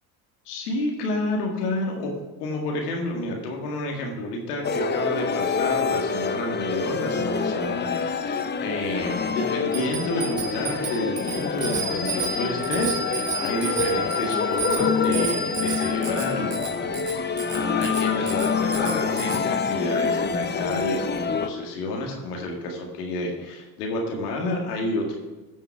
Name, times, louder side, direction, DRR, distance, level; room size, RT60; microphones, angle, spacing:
voice 1, 0.5-2.1 2.4-25.2, left 2 dB, 85° left, 0 dB, 2.1 m, -30 dB
sound 1, 4.6-21.5, left 5 dB, 25° left, 0.7 m, -26 dB
Bicycle bell, 9.7-19.4, right 5 dB, 40° right, 2.9 m, -32 dB
14.5 x 5.7 x 4.7 m, 1.2 s
hypercardioid pair, 70°, 45 cm